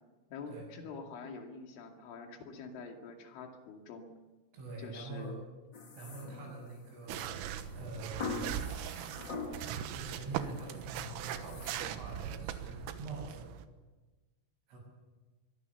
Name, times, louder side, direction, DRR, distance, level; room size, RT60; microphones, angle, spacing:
voice 1, 0.3-4.1 4.8-5.3 6.4-6.6, left 4 dB, 70° left, 3 dB, 4.7 m, -46 dB
voice 2, 4.5-5.4 5.9-7.2 7.7-8.4 9.6-13.5 14.7-14.8, right 3 dB, 70° right, -6 dB, 9.2 m, -45 dB
sound 1, 5.7-6.8 8.2-9.9 10.3-10.8 11.3-11.7, left 3 dB, 90° left, 1.0 m, -42 dB
sound 2, 7.1-13.7, right 10 dB, 90° right, 3.9 m, -40 dB
23.0 x 22.0 x 7.1 m, 1.2 s
omnidirectional pair, 5.8 m